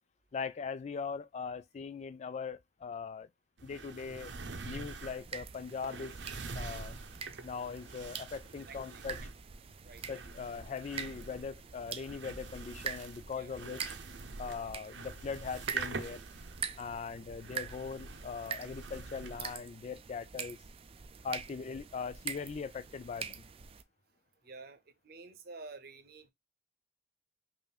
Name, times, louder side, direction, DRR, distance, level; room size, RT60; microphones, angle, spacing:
voice 1, 0.3-3.3 3.6-4.3 4.6-6.1 6.5-6.9 7.4-9.2 10.1-13.9 14.4-16.2 16.8-20.6 21.2-23.4, left 5 dB, 40° left, 0.3 m, -40 dB
sound 1, 3.6-19.6, right 4 dB, 90° right, 0.7 m, -45 dB
sound 2, 4.8-23.8, right 7 dB, 35° right, 0.4 m, -45 dB
voice 2, 8.7-9.3 9.8-10.0 13.4-13.5 16.9-17.1 21.5-21.6 24.1-26.3, right 3 dB, 55° right, 0.8 m, -51 dB
5.5 x 2.6 x 2.3 m
head